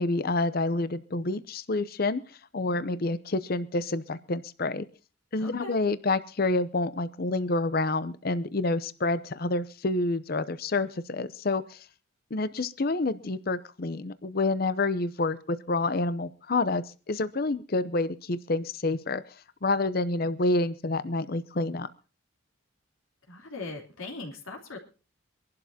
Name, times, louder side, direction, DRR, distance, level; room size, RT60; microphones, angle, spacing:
voice 1, 0.0-2.2 2.5-4.9 5.3-11.8 12.3-19.2 19.6-21.9, left 2 dB, 45° left, 14 dB, 0.6 m, -28 dB
voice 2, 5.4-5.8 23.3-24.8, left 3 dB, 80° left, 0 dB, 3.3 m, -39 dB
25.0 x 11.5 x 2.8 m, 0.35 s
head